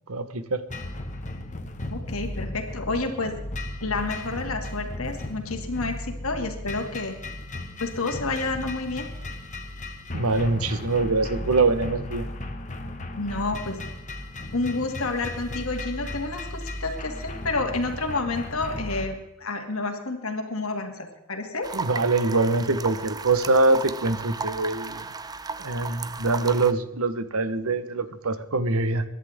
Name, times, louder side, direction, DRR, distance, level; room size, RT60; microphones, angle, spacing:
voice 1, 0.1-0.6 10.1-12.3 21.7-25.1 25.6-29.0, right 3 dB, 90° right, 11 dB, 1.1 m, -24 dB
sound 1, 0.7-19.1, left 1 dB, 35° left, 1.4 m, -35 dB
voice 2, 1.9-3.4 3.8-7.2 7.8-9.0 13.2-13.8 14.5-21.7, left 3 dB, 75° left, 4 dB, 2.3 m, -29 dB
sound 2, 21.6-26.7, right 4 dB, 20° right, 0.5 m, -35 dB
22.5 x 11.0 x 3.6 m, 0.92 s
head